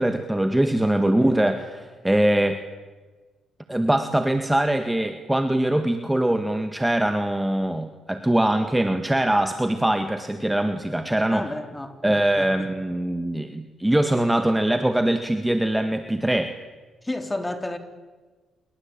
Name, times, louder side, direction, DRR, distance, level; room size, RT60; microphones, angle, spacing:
voice 1, 0.0-2.6 3.7-11.5 12.0-16.5, right 1 dB, 10° right, 1.8 m, -22 dB
voice 2, 1.0-1.4 11.3-12.0 12.4-12.7 17.0-17.8, left 1 dB, 15° left, 3.8 m, -31 dB
28.0 x 23.0 x 8.9 m
cardioid pair, 90°, 0 cm